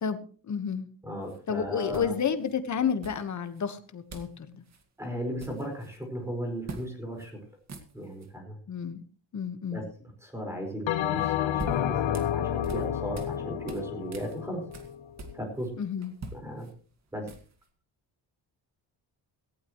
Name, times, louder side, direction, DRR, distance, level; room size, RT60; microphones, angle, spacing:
voice 1, 0.4-0.9 1.5-4.6 8.7-9.0 9.3-9.8 15.8-16.2, left 7 dB, 40° left, 10 dB, 1.4 m, -30 dB
voice 2, 1.0-2.1 5.0-7.3 7.9-8.5 9.7-9.8 10.2-14.6 15.3-15.7 16.3-16.7 17.1-17.3, equal, 5° right, 3 dB, 5.0 m, -36 dB
sound 1, 1.2-1.4 1.9-2.5 3.0-3.6 4.1-4.4 4.6-4.8 5.2-6.0 6.7-6.9 7.2-7.3 7.6-8.3 11.2-13.4 13.7-15.7 16.0-17.7, right 2 dB, 35° right, 2.0 m, -43 dB
Bell, 10.9-15.5, left 11 dB, 90° left, 1.0 m, -30 dB
17.5 x 16.0 x 3.1 m, 0.41 s
wide cardioid pair, 180°, 44 cm